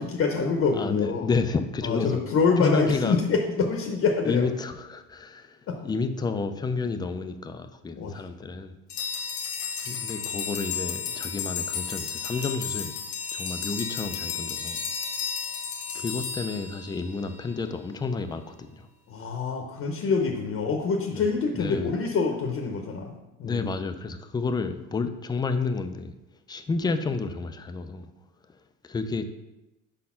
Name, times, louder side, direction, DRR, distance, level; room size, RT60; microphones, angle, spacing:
voice 1, 0.0-1.3 1.8-4.5 5.7-5.8 8.0-8.1 19.1-23.1 23.4-23.7, left 4 dB, 40° left, 3 dB, 0.8 m, -25 dB
voice 2, 0.7-3.2 4.2-8.8 9.9-12.9 13.3-14.8 15.9-18.9 21.1-21.2 21.5-21.9 23.4-26.1 26.5-28.1 28.8-29.3, left 4 dB, 15° left, 8 dB, 0.3 m, -30 dB
sound 1, 8.9-17.4, left 6 dB, 75° left, 1.1 m, -33 dB
5.2 x 4.3 x 5.6 m, 0.99 s
cardioid pair, 125°, 35 cm